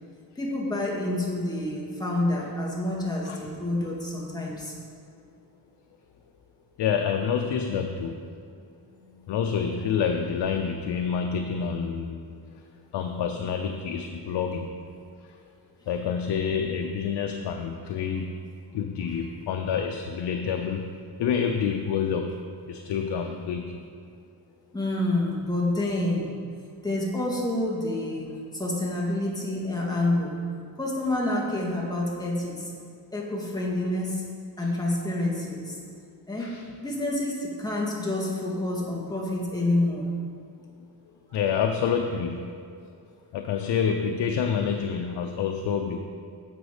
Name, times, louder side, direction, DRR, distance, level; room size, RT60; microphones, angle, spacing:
voice 1, 0.4-4.7 8.8-9.2 24.7-26.3 26.8-30.4 30.8-32.7 33.1-34.2 34.6-35.8 36.3-40.1, left 1 dB, 10° left, -4 dB, 2.3 m, -28 dB
voice 2, 6.8-8.4 9.3-12.2 12.9-14.8 15.9-18.4 18.7-23.8 36.4-36.6 41.3-42.5 42.8-42.9 43.3-46.0, left 7 dB, 90° left, 4 dB, 0.7 m, -28 dB
10.5 x 7.2 x 5.1 m, 2.3 s
cardioid pair, 95°, 40 cm